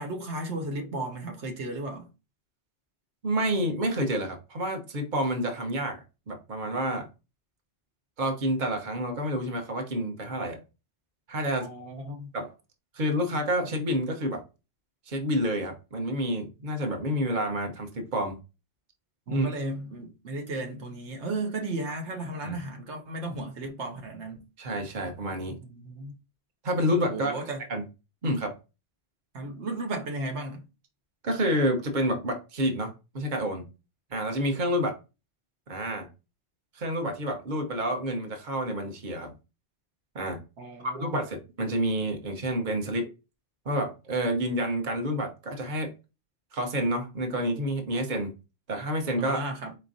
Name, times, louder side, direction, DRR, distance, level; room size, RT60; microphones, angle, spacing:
voice 1, 0.0-2.1 11.6-12.3 19.3-24.5 25.7-26.2 27.1-27.6 29.3-30.6 40.6-41.2 49.2-49.8, right 2 dB, 85° right, 1.3 m, -35 dB
voice 2, 3.2-7.1 8.2-10.6 11.3-11.7 12.3-12.5 12.9-14.4 15.1-18.4 19.3-19.5 22.4-22.6 24.6-25.6 26.6-27.4 27.7-27.8 28.2-28.6 31.2-33.7 34.1-35.0 35.7-36.1 36.7-39.3 40.1-40.4 40.8-43.1 43.6-45.9 46.5-48.3 48.7-49.4, equal, 45° right, 1.1 m, -29 dB
4.5 x 4.4 x 2.6 m
omnidirectional pair, 1.1 m